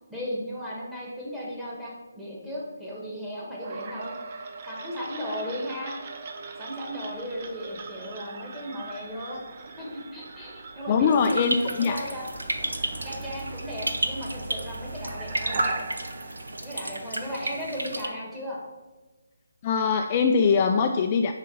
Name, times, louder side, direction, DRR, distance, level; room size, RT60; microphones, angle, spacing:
voice 1, 0.1-4.1 4.6-6.0 6.6-9.4 9.8-12.2 13.0-15.7 16.6-18.6, equal, 5° right, -7 dB, 1.6 m, -35 dB
sound 1, 3.6-17.5, right 4 dB, 40° right, 0.6 m, -40 dB
voice 2, 10.9-12.0 19.6-21.3, left 5 dB, 30° left, 4 dB, 0.3 m, -22 dB
sound 2, 11.1-18.1, right 1 dB, 85° right, 0.7 m, -32 dB
5.5 x 4.0 x 5.5 m, 1.2 s
figure-of-eight pair, 150°, 0 cm